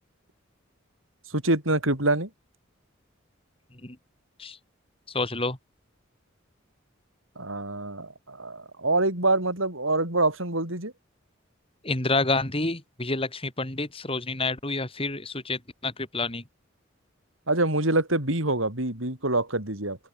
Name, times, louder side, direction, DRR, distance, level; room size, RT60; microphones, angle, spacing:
voice 1, 1.3-2.3 7.4-10.9 17.5-20.0, right 2 dB, 80° right, 7.7 m, -25 dB
voice 2, 5.1-5.6 11.8-16.4, left 3 dB, 30° left, 4.1 m, -28 dB
open air
head